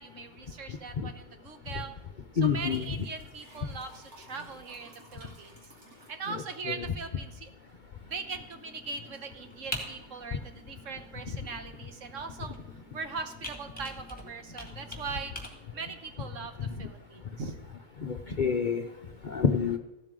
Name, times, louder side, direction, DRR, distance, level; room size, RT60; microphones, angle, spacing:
voice 1, 0.0-1.9 2.3-5.5 6.1-7.5 8.0-12.5 12.9-15.3 15.7-17.5, right 4 dB, 60° right, 7 dB, 1.4 m, -40 dB
voice 2, 2.4-2.9 6.3-6.8 18.0-18.8 19.2-19.8, left 6 dB, 45° left, 4 dB, 0.6 m, -28 dB
Liquid, 2.4-6.6, right 1 dB, 80° right, 3.3 m, -53 dB
Computer keyboard, 8.1-15.5, equal, 5° left, 2.1 m, -45 dB
14.0 x 12.0 x 3.8 m, 1.0 s
omnidirectional pair, 1.5 m